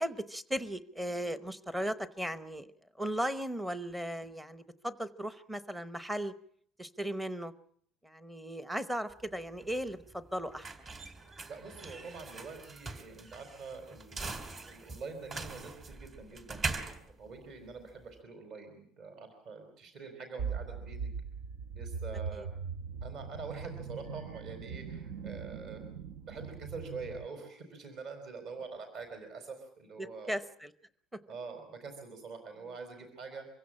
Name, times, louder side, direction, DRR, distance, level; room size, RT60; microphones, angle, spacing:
voice 1, 0.0-2.7 3.0-6.3 6.8-7.5 8.0-10.7 22.3-22.5 30.0-30.7, equal, 5° right, 13 dB, 0.9 m, -36 dB
sound 1, 9.1-18.2, right 3 dB, 25° right, 2.5 m, -42 dB
voice 2, 11.5-21.1 21.7-22.5 23.0-25.8 26.3-30.4 31.3-33.5, right 4 dB, 45° right, 6 dB, 4.2 m, -45 dB
sound 2, 20.4-27.3, right 6 dB, 75° right, 0.8 m, -40 dB
24.5 x 16.0 x 8.7 m, 0.63 s
cardioid pair, 170°, 0 cm